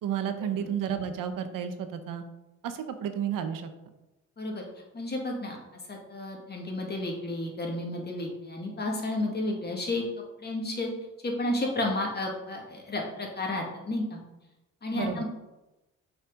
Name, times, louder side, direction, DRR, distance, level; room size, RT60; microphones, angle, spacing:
voice 1, 0.0-2.2 2.6-3.7 14.9-15.2, right 8 dB, 80° right, 9 dB, 0.9 m, -32 dB
voice 2, 4.9-5.6 5.9-10.0 10.4-10.9 11.2-14.2 14.8-15.2, left 2 dB, 30° left, 0 dB, 2.0 m, -32 dB
6.4 x 5.1 x 5.2 m, 1.0 s
cardioid pair, 100°, 32 cm